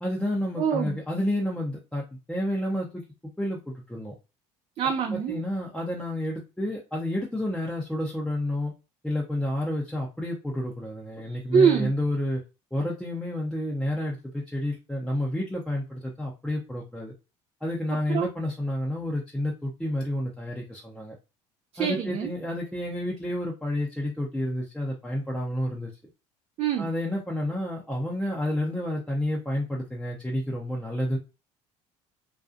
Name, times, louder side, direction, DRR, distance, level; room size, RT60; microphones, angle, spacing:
voice 1, 0.0-2.0 2.3-3.0 3.4-4.1 5.1-8.7 9.0-12.4 12.7-17.1 17.6-21.2 21.8-25.9 26.8-31.2, left 1 dB, 5° left, 0.6 m, -30 dB
voice 2, 0.6-1.0 4.8-5.4 11.5-11.9 18.1-18.3 21.7-22.3 26.6-26.9, right 7 dB, 45° right, 0.4 m, -24 dB
2.4 x 2.2 x 2.4 m
supercardioid pair, 80°, 15 cm